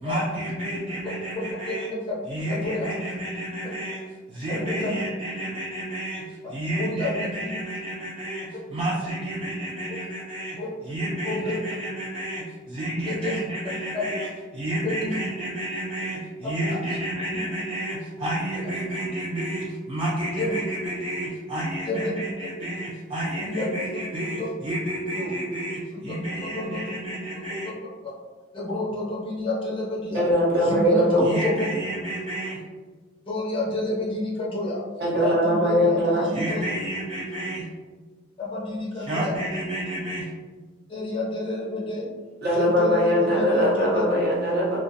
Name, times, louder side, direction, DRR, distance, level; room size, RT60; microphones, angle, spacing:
voice 1, 0.0-1.9 2.3-4.0 4.3-6.2 6.5-10.6 10.9-14.3 14.5-27.7 31.2-32.6 36.3-37.6 39.0-40.3, right 1 dB, 30° right, -6 dB, 0.3 m, -30 dB
voice 2, 1.5-2.1 2.5-2.9 4.5-4.9 6.8-7.2 10.6-10.7 11.2-11.5 13.0-13.3 13.9-14.0 14.8-15.2 16.7-16.8 17.3-17.4 18.5-18.7 20.4-20.5 21.8-22.1 23.3-23.7 24.4-24.5 25.2-25.3 25.9-26.9 27.6-27.7 28.5-30.3 30.6-31.6 33.3-34.8 35.1-36.6 38.4-39.4 40.9-42.1 42.5-44.0, left 2 dB, 25° left, -6 dB, 0.6 m, -29 dB
voice 3, 30.1-31.2 35.0-36.2 42.4-44.8, equal, 50° right, -5 dB, 0.7 m, -21 dB
2.4 x 2.1 x 2.6 m, 1.4 s
head